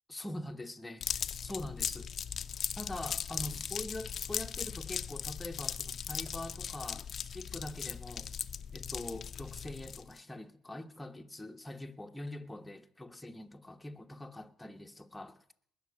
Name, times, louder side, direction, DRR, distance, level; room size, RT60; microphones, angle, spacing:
voice 1, 0.1-2.1 2.8-8.3 8.7-15.4, left 1 dB, 10° left, 1.3 m, -44 dB
sound 1, 1.0-10.2, left 8 dB, 50° left, 0.7 m, -38 dB
20.0 x 6.8 x 9.8 m
supercardioid pair, 70°, 0 cm